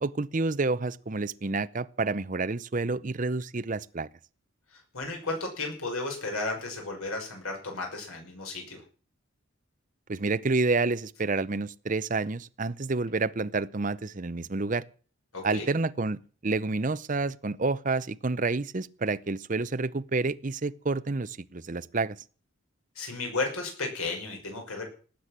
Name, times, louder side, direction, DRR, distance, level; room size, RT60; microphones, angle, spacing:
voice 1, 0.0-4.1 10.1-14.8 15.4-22.2, right 3 dB, 35° right, 0.6 m, -29 dB
voice 2, 4.7-8.8 15.3-15.7 23.0-24.9, left 3 dB, 90° left, 5.8 m, -34 dB
19.0 x 8.3 x 7.4 m
head